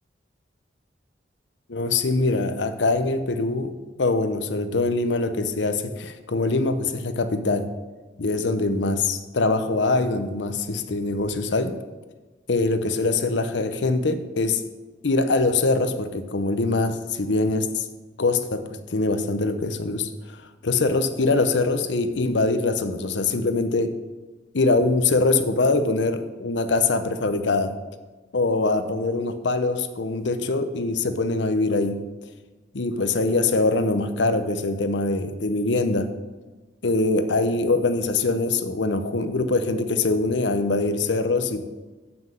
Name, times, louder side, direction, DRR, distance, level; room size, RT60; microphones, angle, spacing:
voice 1, 1.7-7.7 8.2-11.8 12.5-14.6 15.0-17.9 18.2-24.0 24.5-27.8 28.3-32.0 32.7-36.1 36.8-41.7, left 3 dB, 75° left, 9 dB, 0.7 m, -23 dB
7.6 x 5.9 x 7.4 m, 1.3 s
head